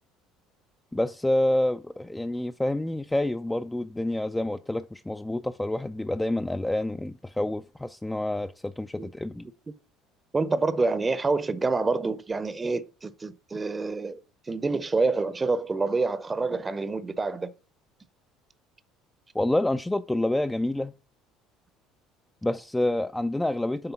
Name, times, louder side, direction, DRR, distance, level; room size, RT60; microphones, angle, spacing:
voice 1, 0.9-9.5 19.3-20.9 22.4-23.9, left 1 dB, 10° left, 0.4 m, -28 dB
voice 2, 10.3-14.2 14.5-17.5, right 3 dB, 25° right, 0.7 m, -27 dB
8.0 x 3.5 x 5.7 m
hypercardioid pair, 60°, 0 cm